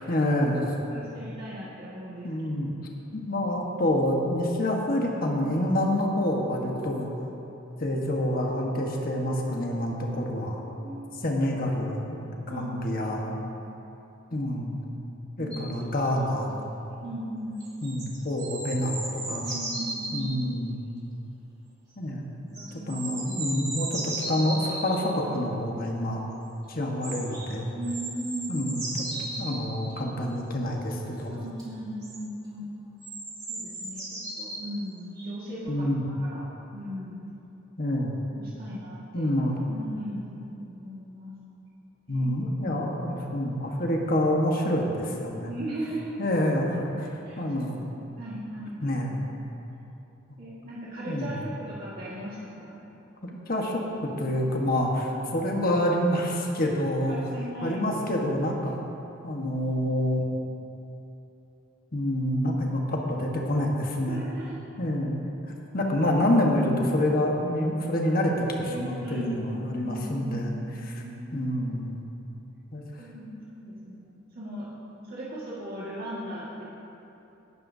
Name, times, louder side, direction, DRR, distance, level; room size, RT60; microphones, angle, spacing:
voice 1, 0.0-0.7 2.2-2.7 3.1-7.1 7.8-10.6 11.2-12.2 12.5-13.3 14.3-14.9 15.4-16.5 17.8-19.4 20.1-20.9 22.0-22.3 22.9-26.2 26.7-27.6 28.5-28.8 29.4-31.3 35.7-36.0 37.8-38.2 39.1-39.6 42.1-45.5 46.2-47.1 47.4-47.8 48.8-49.2 51.1-51.5 53.2-57.2 57.6-58.8 59.2-60.2 61.9-64.3 64.8-65.2 65.7-70.5 70.8-71.0 71.3-72.0 72.7-72.8, left 1 dB, 45° left, 0 dB, 1.3 m, -27 dB
voice 2, 0.9-2.3 10.6-11.2 12.5-12.9 13.3-13.5 15.4-15.8 17.0-17.6 19.4-20.2 22.5-23.1 27.7-28.6 31.2-32.7 33.5-36.5 36.7-37.2 38.3-39.3 39.7-41.3 42.1-42.3 42.7-42.8 45.5-46.2 47.3-47.7 48.2-48.8 50.4-52.8 57.1-57.8 64.0-64.6 68.2-68.3 68.6-70.3 70.8-71.5 72.1-72.2 73.0-74.7 75.0-76.7, right 1 dB, 50° right, -8 dB, 1.8 m, -38 dB
sound 1, 15.5-15.6 17.6-20.3 22.5-25.0 27.0-27.5 27.8-30.0 31.6-31.7 32.0-32.2 33.0-34.6 35.2-35.3, right 2 dB, 20° right, 2.5 m, -35 dB
18.0 x 11.0 x 2.7 m, 3.0 s
head